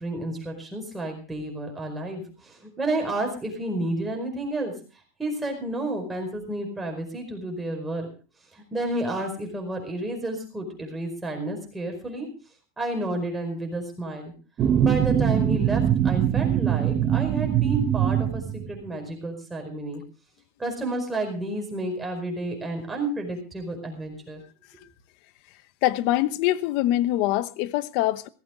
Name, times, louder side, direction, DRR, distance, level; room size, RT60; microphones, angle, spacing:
voice 1, 0.0-4.7 5.2-8.1 8.5-12.3 12.8-14.3 14.8-20.0 20.6-24.4, right 1 dB, 10° right, 4.9 m, -31 dB
sound 1, 14.6-18.9, right 10 dB, 30° right, 1.1 m, -22 dB
voice 2, 25.8-28.3, left 15 dB, 50° left, 0.9 m, -24 dB
16.5 x 14.5 x 3.8 m
supercardioid pair, 155°, 0 cm